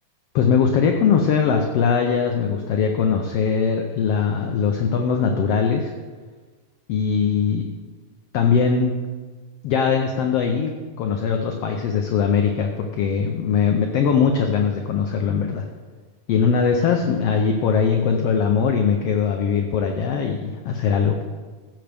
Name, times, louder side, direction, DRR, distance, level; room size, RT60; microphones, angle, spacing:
voice 1, 0.3-5.9 6.9-7.7 8.3-8.9 9.6-10.7 11.0-15.6 16.3-21.2, left 6 dB, 85° left, 3 dB, 1.3 m, -21 dB
15.0 x 7.6 x 3.4 m, 1.4 s
omnidirectional pair, 3.6 m